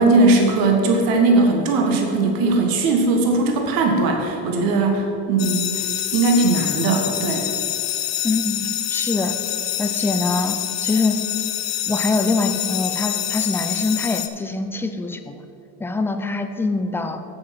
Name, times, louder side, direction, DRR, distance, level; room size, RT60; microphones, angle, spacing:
voice 1, 0.0-5.9 6.1-7.5, right 3 dB, 60° right, 2 dB, 1.4 m, -19 dB
sound 1, 5.4-14.3, left 12 dB, 45° left, 0.7 m, -26 dB
voice 2, 8.2-9.4 9.8-11.2 11.9-15.4 15.8-17.2, left 3 dB, 5° left, 7 dB, 0.3 m, -24 dB
7.7 x 7.4 x 5.7 m, 2.7 s
cardioid pair, 135°, 38 cm